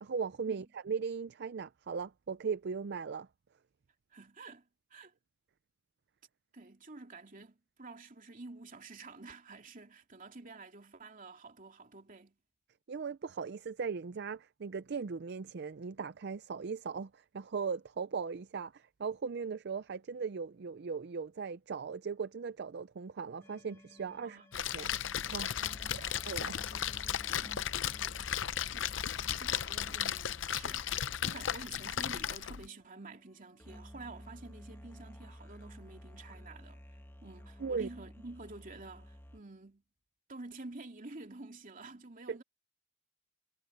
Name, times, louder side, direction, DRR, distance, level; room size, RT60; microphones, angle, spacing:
voice 1, 0.0-3.3 12.9-24.9 25.3-25.6 26.3-26.6 37.6-37.9 42.3-42.4, right 5 dB, 60° right, 0.5 m, -38 dB
voice 2, 4.1-5.1 6.5-12.4 24.2-24.5 25.7-26.3 27.4-27.7 28.7-28.9 29.4-30.9 31.2-36.8 37.2-39.8 40.3-42.4, right 3 dB, 45° right, 2.9 m, -50 dB
sound 1, 23.4-39.4, equal, 10° left, 1.2 m, -53 dB
Splash splatter, 24.5-32.7, left 10 dB, 75° left, 0.6 m, -35 dB
head